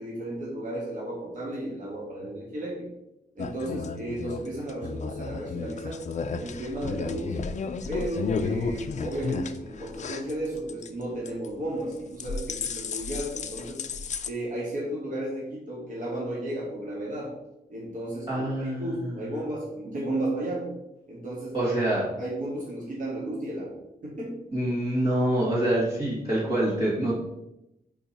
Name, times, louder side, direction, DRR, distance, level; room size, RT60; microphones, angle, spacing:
voice 1, 0.0-2.9 3.4-6.0 6.4-7.4 7.9-13.8 14.3-17.3 17.7-20.7 21.1-21.9 22.2-23.7 24.0-24.3, right 1 dB, 55° right, -5 dB, 2.1 m, -33 dB
sound 1, 3.4-10.9 11.3-11.6 11.9-14.3, left 5 dB, 50° left, 0.4 m, -33 dB
voice 2, 18.3-19.1 21.5-22.0 24.5-27.1, right 1 dB, 35° right, -11 dB, 2.3 m, -26 dB
5.4 x 4.7 x 4.4 m, 0.87 s
wide cardioid pair, 145°, 16 cm